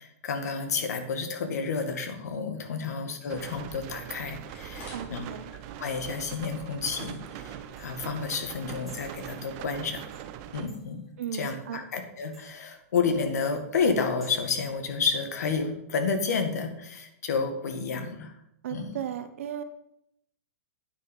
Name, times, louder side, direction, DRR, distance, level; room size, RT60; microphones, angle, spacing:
voice 1, 0.0-5.2 5.8-10.0 10.5-18.3 18.7-19.0, left 5 dB, 85° left, 5 dB, 1.9 m, -30 dB
sound 1, 3.2-11.1, left 1 dB, 20° left, 2.9 m, -54 dB
sound 2, 3.3-10.7, right 10 dB, 30° right, 0.6 m, -42 dB
voice 2, 4.9-5.5 11.2-11.8 18.6-19.6, right 9 dB, 55° right, 10 dB, 1.0 m, -35 dB
sound 3, 7.8-14.6, right 1 dB, ahead, 3.7 m, -56 dB
9.4 x 6.5 x 5.5 m, 0.78 s
supercardioid pair, 170°, 9 cm